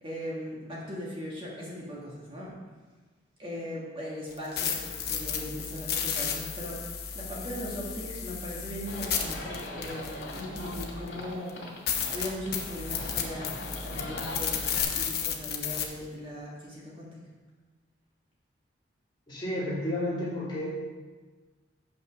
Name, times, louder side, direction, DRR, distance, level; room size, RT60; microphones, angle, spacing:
voice 1, 0.0-2.5 3.4-6.8 7.1-11.5 12.1-13.5 13.8-17.1, equal, 30° right, -5 dB, 1.6 m, -39 dB
sound 1, 4.3-11.1 11.5-11.6 11.9-15.8, left 7 dB, 55° left, 0.9 m, -33 dB
Livestock farm animals working animals, 8.9-14.8, left 1 dB, 75° left, 2.2 m, -41 dB
voice 2, 19.3-20.7, left 1 dB, 25° left, -8 dB, 2.6 m, -31 dB
7.2 x 5.9 x 6.2 m, 1.4 s
head